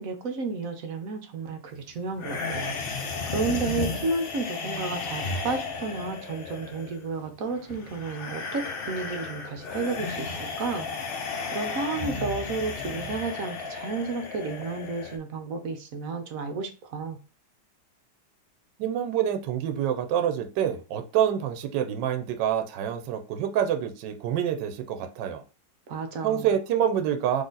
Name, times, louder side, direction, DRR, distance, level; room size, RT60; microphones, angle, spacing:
voice 1, 0.0-2.7 3.3-10.9 11.5-17.2 25.9-26.5, right 4 dB, 60° right, 6 dB, 1.0 m, -32 dB
sound 1, 2.2-15.2, left 4 dB, 70° left, 0.5 m, -34 dB
voice 2, 18.8-25.4 26.2-27.4, right 9 dB, 80° right, 7 dB, 1.3 m, -27 dB
4.0 x 3.1 x 3.9 m, 0.35 s
omnidirectional pair, 2.0 m